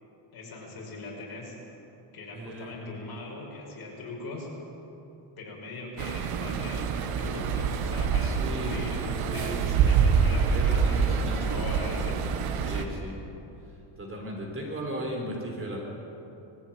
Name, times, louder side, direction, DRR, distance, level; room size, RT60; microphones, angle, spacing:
voice 1, 0.3-1.6 2.1-4.5 5.4-12.2 12.6-12.9, left 2 dB, 45° left, -2 dB, 6.5 m, -41 dB
voice 2, 2.3-2.8 8.2-8.7 9.2-9.8 10.5-11.6 12.6-13.2 14.0-15.8, right 1 dB, 25° right, 0 dB, 3.9 m, -36 dB
sound 1, 6.0-12.8, right 6 dB, 90° right, 1.7 m, -26 dB
22.0 x 15.5 x 9.3 m, 3.0 s
cardioid pair, 140°, 50 cm